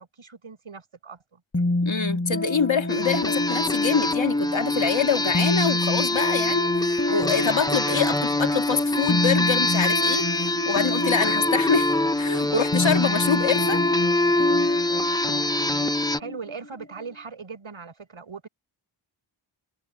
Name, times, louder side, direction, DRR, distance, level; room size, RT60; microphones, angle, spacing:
voice 1, 0.0-1.4 16.2-18.5, right 5 dB, 85° right, 7.5 m, -40 dB
sound 1, 1.5-17.1, left 1 dB, 30° left, 4.5 m, -29 dB
voice 2, 1.9-13.8, left 6 dB, 70° left, 2.0 m, -25 dB
sound 2, 2.9-16.2, left 2 dB, 10° left, 0.7 m, -24 dB
wide cardioid pair, 60°, 47 cm